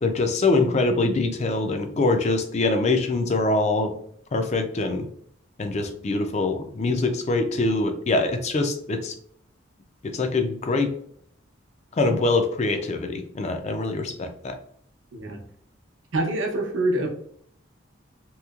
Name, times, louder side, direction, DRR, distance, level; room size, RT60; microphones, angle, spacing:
voice 1, 0.0-3.9 4.3-5.1 5.6-9.1 10.0-10.9 12.0-14.5, left 2 dB, 35° left, 6 dB, 0.4 m, -24 dB
voice 2, 16.1-17.1, right 1 dB, 75° right, 2 dB, 0.7 m, -25 dB
3.0 x 2.8 x 2.3 m, 0.65 s
head